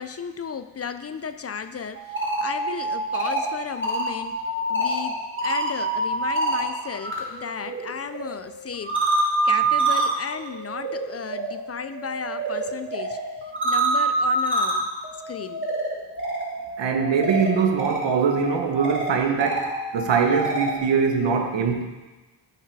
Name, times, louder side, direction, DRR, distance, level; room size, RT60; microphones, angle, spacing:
voice 1, 0.0-4.4 4.7-14.9 15.3-15.7, left 6 dB, 35° left, 10 dB, 0.4 m, -34 dB
sound 1, 2.0-7.2 7.5-20.8, right 2 dB, 25° right, 1.7 m, -27 dB
voice 2, 16.8-21.8, right 5 dB, 80° right, 4 dB, 1.1 m, -22 dB
9.7 x 4.8 x 4.6 m, 1.2 s
cardioid pair, 95°, 43 cm